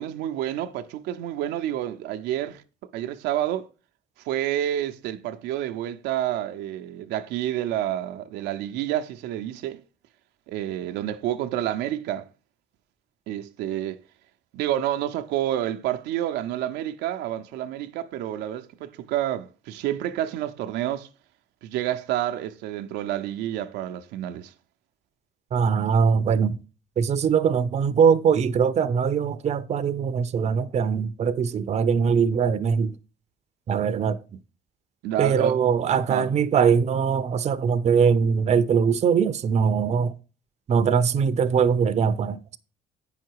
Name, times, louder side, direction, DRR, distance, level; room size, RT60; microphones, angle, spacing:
voice 1, 0.0-2.6 2.9-3.7 4.2-9.8 10.5-12.3 13.3-14.0 14.5-21.1 21.6-24.5 35.0-35.6 36.1-36.3, right 12 dB, 85° right, 0.7 m, -29 dB
voice 2, 25.5-26.6 27.0-32.9 33.7-34.2 35.2-40.1 40.7-42.6, right 6 dB, 40° right, 0.6 m, -22 dB
8.6 x 5.8 x 4.6 m
cardioid pair, 110°, 17 cm